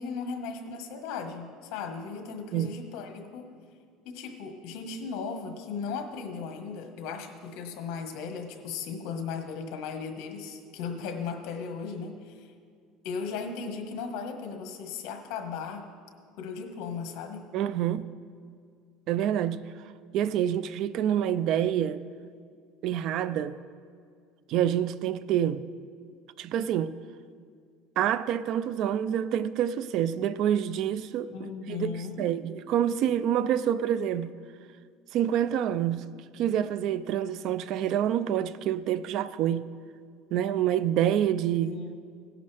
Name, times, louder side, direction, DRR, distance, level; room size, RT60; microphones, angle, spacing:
voice 1, 0.0-3.5 4.0-12.5 13.0-15.9 16.4-17.5 31.3-32.4 41.6-41.9, left 5 dB, 65° left, 1.5 m, -36 dB
voice 2, 17.5-18.1 19.1-19.6 20.1-22.0 22.8-23.6 24.5-25.6 26.4-26.9 28.0-34.3 35.1-36.1 36.3-39.7 40.3-41.7, right 10 dB, 50° right, 0.4 m, -27 dB
17.5 x 11.0 x 3.4 m
cardioid pair, 155°, 0 cm